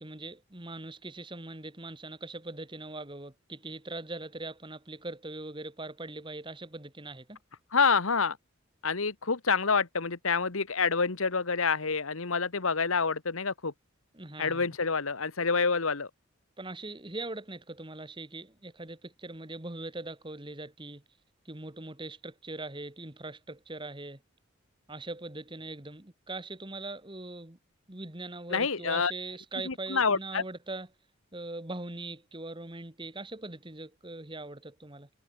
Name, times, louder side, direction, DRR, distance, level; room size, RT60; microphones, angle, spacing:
voice 1, 0.0-7.4 14.1-14.7 16.6-21.0 21.5-24.2 24.9-27.6 27.9-30.9 31.3-35.1, right 2 dB, 25° right, 1.7 m, -41 dB
voice 2, 7.7-8.4 8.8-13.7 14.4-16.1 28.5-29.1 29.7-30.4, left 5 dB, 75° left, 1.4 m, -27 dB
head